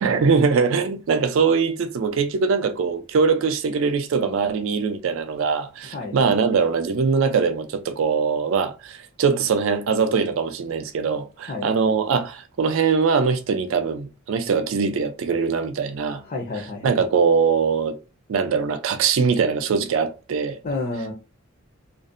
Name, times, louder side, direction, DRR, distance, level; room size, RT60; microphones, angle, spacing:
voice 1, 0.0-16.2 16.8-18.0 18.3-20.6, right 5 dB, 65° right, 0.3 m, -22 dB
voice 2, 5.8-6.2 11.5-11.7 16.2-17.0 20.6-21.1, left 3 dB, 35° left, 0.4 m, -30 dB
2.5 x 2.0 x 2.4 m
head